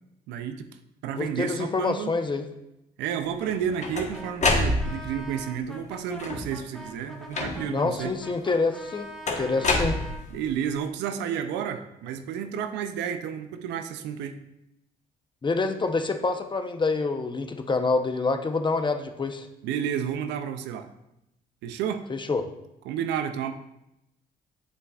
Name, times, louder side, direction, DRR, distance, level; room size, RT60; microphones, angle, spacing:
voice 1, 0.3-0.7 1.0-2.1 3.0-8.1 9.6-9.7 10.3-14.4 19.6-20.9 21.6-22.0 22.9-23.5, right 8 dB, 85° right, 8 dB, 0.5 m, -31 dB
voice 2, 1.2-2.5 7.7-9.1 9.4-10.0 15.4-19.5 22.1-22.5, left 3 dB, 25° left, 6 dB, 0.8 m, -26 dB
sound 1, 3.4-5.2 6.1-6.6 7.3-7.9 9.3-10.5, left 2 dB, 45° left, 1.2 m, -27 dB
Brass instrument, 4.1-10.3, equal, ahead, 1.4 m, -43 dB
7.5 x 6.6 x 2.4 m, 0.86 s
supercardioid pair, 70°, 17 cm